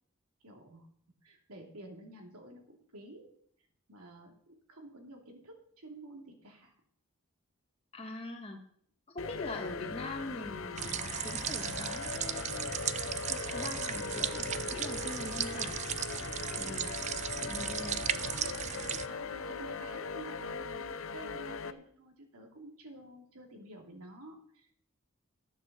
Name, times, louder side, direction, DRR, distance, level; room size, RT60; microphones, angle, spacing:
voice 1, 0.4-0.9 1.2-3.3 3.9-6.7 17.4-17.7 18.2-18.6 18.8-24.7, right 1 dB, 90° right, 2 dB, 3.0 m, -51 dB
voice 2, 7.9-8.6 9.1-12.7 13.3-15.8 16.6-17.0 17.4-18.1, left 1 dB, 25° left, 2 dB, 2.1 m, -43 dB
sound 1, 9.2-21.7, left 5 dB, 65° left, 0.7 m, -40 dB
sound 2, 10.8-19.1, right 9 dB, 30° right, 0.4 m, -36 dB
13.5 x 7.3 x 6.8 m, 0.63 s
head